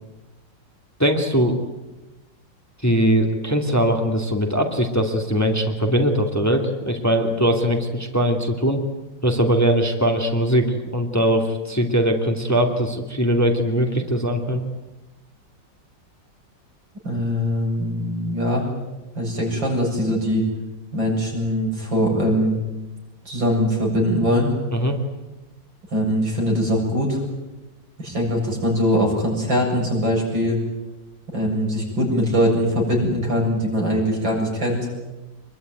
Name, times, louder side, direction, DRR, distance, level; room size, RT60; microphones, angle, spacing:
voice 1, 1.0-1.6 2.8-8.8 9.2-14.6 24.7-25.0, equal, 10° left, 3 dB, 2.4 m, -21 dB
voice 2, 17.0-18.7 19.1-20.4 20.9-22.5 23.2-24.5 25.9-27.2 28.0-30.6 31.3-34.9, equal, 80° right, 0 dB, 8.2 m, -22 dB
25.5 x 22.0 x 9.4 m, 1.1 s
omnidirectional pair, 2.0 m